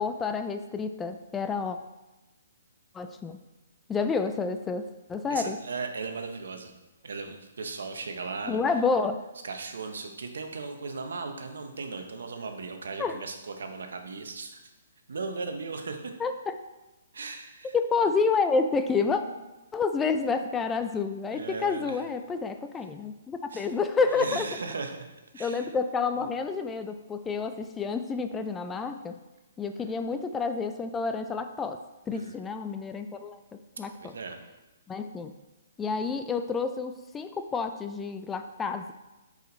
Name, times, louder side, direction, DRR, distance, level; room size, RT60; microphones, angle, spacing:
voice 1, 0.0-1.8 2.9-3.4 3.9-5.6 8.5-9.2 13.0-13.2 16.2-16.3 17.7-19.2 19.7-24.4 25.4-29.2 29.6-31.8 32.1-33.4 33.8-34.1 34.9-35.3 35.8-38.9, left 4 dB, 15° left, 8 dB, 0.4 m, -29 dB
voice 2, 5.3-6.7 7.0-8.6 9.4-14.6 15.1-16.1 17.1-17.7 19.2-19.4 21.3-22.0 23.5-23.7 24.1-25.1 25.3-25.7 29.7-29.9 32.1-32.4 34.0-34.4, right 4 dB, 75° right, 6 dB, 0.9 m, -37 dB
6.6 x 5.0 x 3.9 m, 1.0 s
hypercardioid pair, 135°, 0 cm